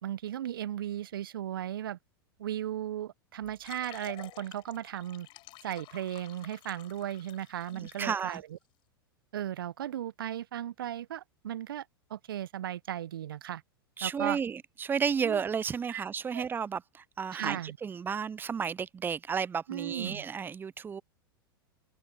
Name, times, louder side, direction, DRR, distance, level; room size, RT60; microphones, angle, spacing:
voice 1, 0.0-2.0 2.4-5.3 5.6-8.6 9.3-11.8 12.1-13.6 14.0-14.4 15.2-15.4 15.9-16.0 16.3-16.5 17.3-17.8 19.7-20.2, right 11 dB, 65° right, 1.3 m, -36 dB
sound 1, 3.4-8.4, left 19 dB, 40° left, 5.5 m, -51 dB
voice 2, 7.7-8.4 14.0-21.0, right 6 dB, 15° right, 0.7 m, -33 dB
open air
figure-of-eight pair, 90°, 13 cm